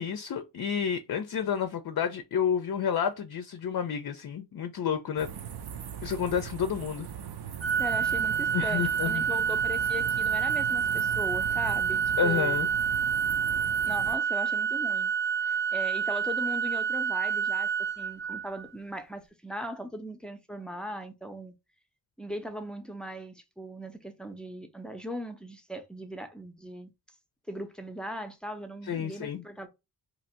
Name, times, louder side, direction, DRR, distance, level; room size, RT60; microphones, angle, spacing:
voice 1, 0.0-5.3 6.0-7.1 8.5-9.2 12.2-12.7 15.5-15.6 28.8-29.4, left 7 dB, 55° left, 0.5 m, -30 dB
sound 1, 5.2-14.2, right 8 dB, 65° right, 0.6 m, -40 dB
Organ, 7.6-18.7, right 7 dB, 85° right, 1.2 m, -28 dB
voice 2, 7.8-12.6 13.8-15.1 15.7-21.5 22.2-26.9 27.5-29.7, equal, ahead, 0.5 m, -39 dB
2.9 x 2.6 x 4.2 m
wide cardioid pair, 110°, 42 cm